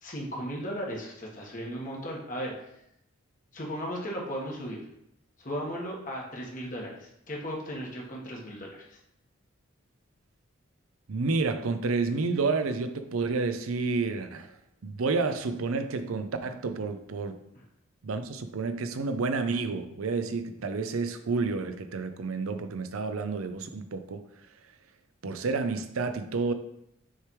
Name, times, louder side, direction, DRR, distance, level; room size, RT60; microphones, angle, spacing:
voice 1, 0.0-2.7 3.5-4.8 5.4-9.0 17.5-17.6, equal, 40° left, -2 dB, 1.2 m, -36 dB
voice 2, 11.1-14.5 14.8-17.4 18.0-24.2 25.2-26.5, right 4 dB, 90° right, 9 dB, 0.6 m, -30 dB
6.5 x 3.3 x 4.5 m, 0.79 s
head